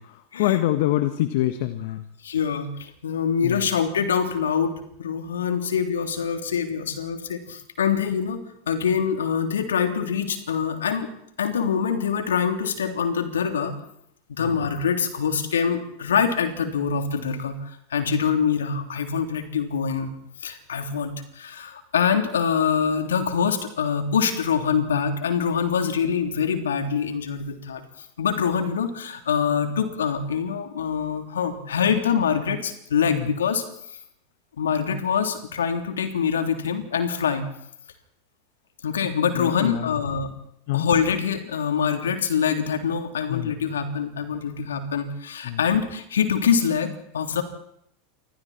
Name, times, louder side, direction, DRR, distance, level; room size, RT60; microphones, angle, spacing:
voice 1, 0.0-2.0 3.4-3.6 14.4-14.5 33.1-33.3 39.3-39.9 40.7-40.9 43.3-43.5 45.4-45.6, left 14 dB, 60° left, 11 dB, 1.4 m, -25 dB
voice 2, 2.2-2.7 3.0-4.7 5.0-11.1 11.4-13.7 14.3-17.6 17.9-20.1 20.4-27.8 28.2-33.6 34.6-37.5 38.8-40.3 40.7-47.4, left 7 dB, 80° left, 5 dB, 3.4 m, -24 dB
28.5 x 25.5 x 4.4 m, 0.72 s
hypercardioid pair, 90°, 0 cm